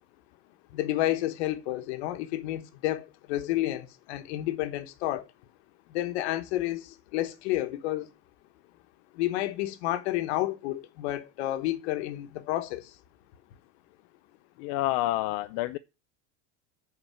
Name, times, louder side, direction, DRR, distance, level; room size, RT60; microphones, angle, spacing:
voice 1, 0.7-5.3 5.9-8.1 9.1-12.9, left 15 dB, 70° left, 1.4 m, -30 dB
voice 2, 14.6-15.8, left 17 dB, 55° left, 0.6 m, -28 dB
10.0 x 4.7 x 7.6 m
supercardioid pair, 140°, 34 cm